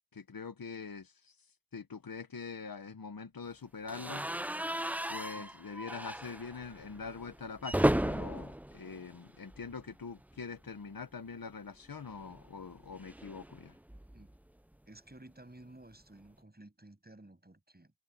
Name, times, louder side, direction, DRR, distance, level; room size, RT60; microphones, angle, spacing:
voice 1, 0.1-1.4 1.7-4.3 5.1-13.8, left 5 dB, 50° left, 1.1 m, -44 dB
sound 1, 3.9-9.9 10.2-10.4 10.7-10.8 12.0-14.4, right 1 dB, 5° right, 0.5 m, -35 dB
voice 2, 14.9-17.9, right 1 dB, 20° right, 7.8 m, -54 dB
wide cardioid pair, 100°, 46 cm